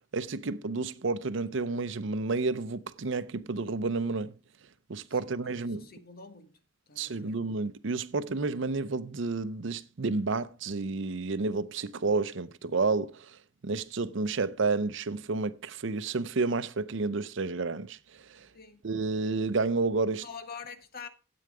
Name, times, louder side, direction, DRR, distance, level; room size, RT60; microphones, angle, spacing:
voice 1, 0.1-4.4 4.9-5.9 7.0-13.4 13.6-18.5 18.8-20.3, right 3 dB, 65° right, 0.7 m, -30 dB
voice 2, 5.1-6.6 6.9-7.4 18.5-18.8 20.2-21.1, left 5 dB, 50° left, 1.5 m, -46 dB
13.0 x 8.7 x 4.8 m
head